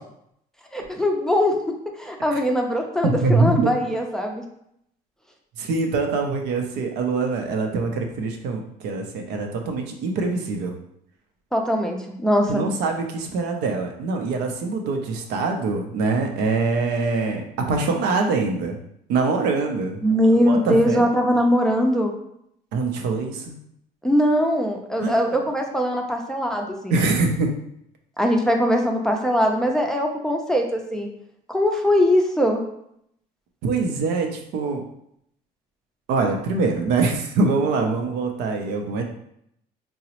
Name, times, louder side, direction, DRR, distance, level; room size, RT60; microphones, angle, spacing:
voice 1, 0.7-1.5 2.0-4.4 11.5-12.6 20.0-22.1 24.0-26.9 28.2-31.1 31.5-32.6, equal, 5° left, 1 dB, 0.4 m, -21 dB
voice 2, 3.0-3.7 5.6-10.8 12.5-18.8 19.1-20.0 20.5-21.0 22.7-23.5 25.0-25.3 26.9-27.5 33.6-34.8 36.1-39.0, right 3 dB, 90° right, 3 dB, 0.5 m, -24 dB
3.7 x 2.0 x 2.9 m, 0.74 s
cardioid pair, 110°, 17 cm